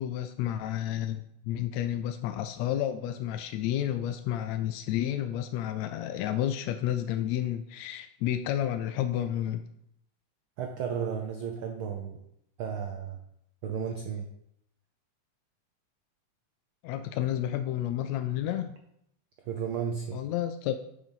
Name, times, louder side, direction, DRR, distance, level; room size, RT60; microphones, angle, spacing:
voice 1, 0.0-9.6 16.8-18.8 20.1-20.8, left 11 dB, 80° left, 9 dB, 1.7 m, -31 dB
voice 2, 10.6-12.2 12.6-13.2 13.6-14.3 19.5-20.2, right 7 dB, 85° right, 4 dB, 1.1 m, -33 dB
8.8 x 5.4 x 5.4 m, 0.76 s
omnidirectional pair, 3.4 m